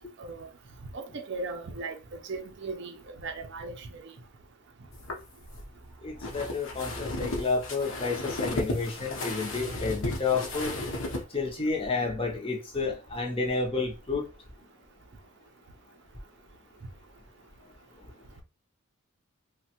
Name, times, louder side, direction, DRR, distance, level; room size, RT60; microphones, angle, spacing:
voice 1, 1.3-2.0 2.3-2.9 3.2-4.1, right 3 dB, 55° right, 0.5 m, -37 dB
sound 1, 4.9-11.2, left 1 dB, 70° left, 0.8 m, -35 dB
voice 2, 6.0-10.7 11.3-14.2, left 4 dB, 25° left, 0.6 m, -30 dB
3.2 x 2.1 x 2.8 m
head